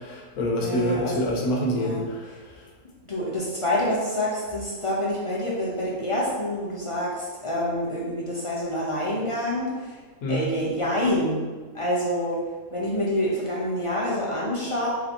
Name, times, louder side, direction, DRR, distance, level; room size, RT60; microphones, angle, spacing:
voice 1, 0.0-2.3 10.2-10.5, equal, 70° left, -2 dB, 1.3 m, -26 dB
voice 2, 0.6-1.2 1.7-2.0 2.3-2.4 3.1-10.0 10.3-11.5 11.7-12.4 12.7-14.9, left 1 dB, 45° left, -6 dB, 0.4 m, -27 dB
4.0 x 2.7 x 4.2 m, 1.4 s
omnidirectional pair, 1.6 m